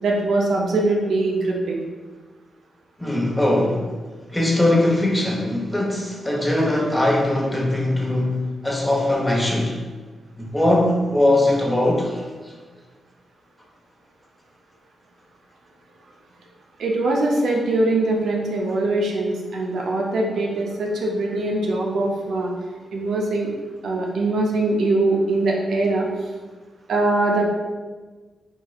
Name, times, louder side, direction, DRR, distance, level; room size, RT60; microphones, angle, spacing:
voice 1, 0.0-1.8 16.8-22.5 22.9-23.5 23.8-26.1 26.9-27.5, right 2 dB, 75° right, -1 dB, 0.4 m, -22 dB
voice 2, 3.0-4.0 4.3-9.7 10.4-12.2, left 1 dB, 15° left, -2 dB, 0.8 m, -20 dB
3.0 x 2.9 x 2.3 m, 1.4 s
supercardioid pair, 45°, 0 cm